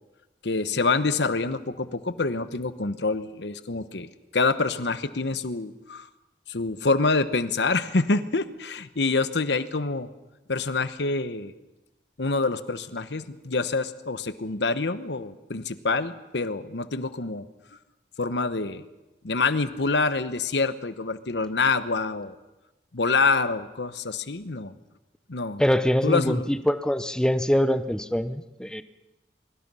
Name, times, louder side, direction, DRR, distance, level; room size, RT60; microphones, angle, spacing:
voice 1, 0.4-6.1 6.5-10.1 10.5-11.5 12.2-17.5 18.2-18.8 19.2-22.4 22.9-24.7 25.3-25.6 26.0-26.5, left 3 dB, 75° left, 12 dB, 1.1 m, -26 dB
voice 2, 25.6-28.8, equal, 5° left, 11 dB, 0.8 m, -24 dB
23.5 x 23.0 x 5.6 m, 1.0 s
head